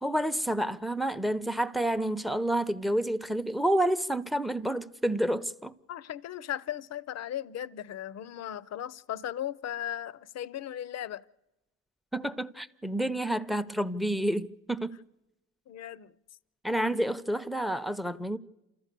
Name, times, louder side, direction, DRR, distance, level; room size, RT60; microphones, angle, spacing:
voice 1, 0.0-5.7 12.1-14.9 16.6-18.4, right 1 dB, ahead, 0.6 m, -29 dB
voice 2, 5.9-11.2 15.7-16.2, left 11 dB, 60° left, 0.6 m, -37 dB
28.0 x 14.0 x 6.7 m
cardioid pair, 90°, 30 cm